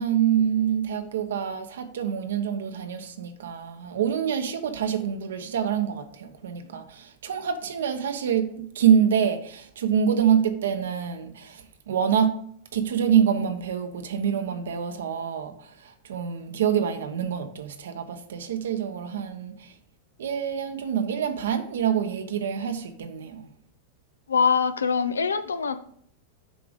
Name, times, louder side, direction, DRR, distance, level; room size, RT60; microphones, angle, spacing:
voice 1, 0.0-12.4 12.7-19.7 20.2-23.5, right 8 dB, 75° right, 1.1 m, -26 dB
voice 2, 24.3-25.8, left 6 dB, 90° left, 0.6 m, -23 dB
7.5 x 4.9 x 5.2 m
hypercardioid pair, 100°, 0 cm